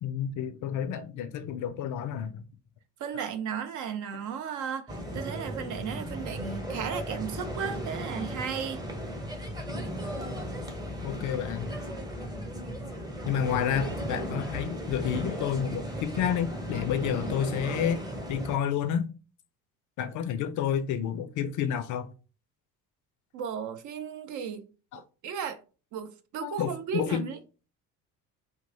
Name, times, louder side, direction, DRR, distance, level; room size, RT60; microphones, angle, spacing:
voice 1, 0.0-2.5 3.1-3.2 11.0-11.8 13.3-18.0 18.3-19.1 20.0-22.1 24.9-25.0 26.4-27.3, left 8 dB, 40° left, 0.5 m, -30 dB
voice 2, 3.0-8.8 23.3-24.7 25.2-25.6 25.9-27.4, right 7 dB, 40° right, 0.5 m, -35 dB
sound 1, 4.9-18.6, equal, 10° right, 0.9 m, -36 dB
2.8 x 2.6 x 3.7 m
figure-of-eight pair, 55°, 48 cm